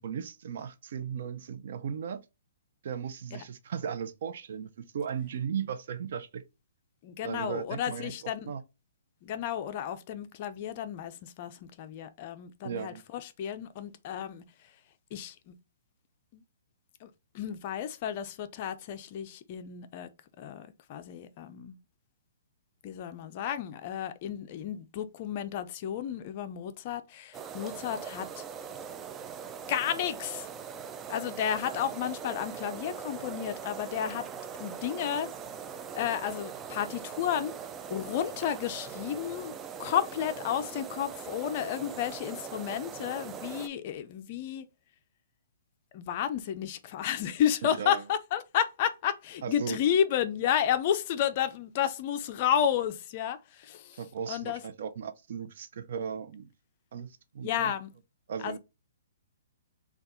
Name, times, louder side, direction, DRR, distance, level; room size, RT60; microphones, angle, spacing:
voice 1, 0.0-2.2 2.8-6.4 7.2-8.6 12.6-13.0 47.6-48.0 49.4-49.8 53.9-56.5 56.9-57.7 58.3-58.6, right 7 dB, 60° right, 0.6 m, -36 dB
voice 2, 7.0-8.5 9.2-14.4 15.1-15.5 16.3-16.4 17.0-17.1 17.3-20.1 20.4-21.8 22.8-28.4 29.7-30.5 31.1-34.3 34.6-35.3 35.9-37.6 37.9-39.5 39.8-44.7 45.9-54.0 54.3-54.6 57.4-57.9 58.4-58.6, left 9 dB, 40° left, 0.5 m, -32 dB
sound 1, 27.3-43.7, right 7 dB, 15° right, 0.3 m, -41 dB
4.1 x 2.4 x 3.7 m
hypercardioid pair, 155°, 0 cm